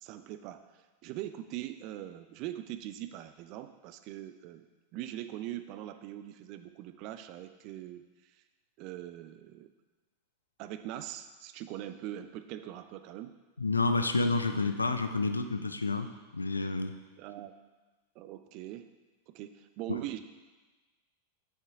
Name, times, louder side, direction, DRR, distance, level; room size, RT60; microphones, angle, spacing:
voice 1, 0.0-4.7 4.9-8.0 8.8-9.7 10.6-13.3 14.4-14.8 17.2-17.5 18.2-18.9 19.3-20.2, right 13 dB, 40° right, 10 dB, 0.4 m, -42 dB
voice 2, 13.6-17.0, left 3 dB, 80° left, 9 dB, 0.4 m, -29 dB
6.5 x 6.0 x 4.6 m, 1.3 s
figure-of-eight pair, 90°, 0 cm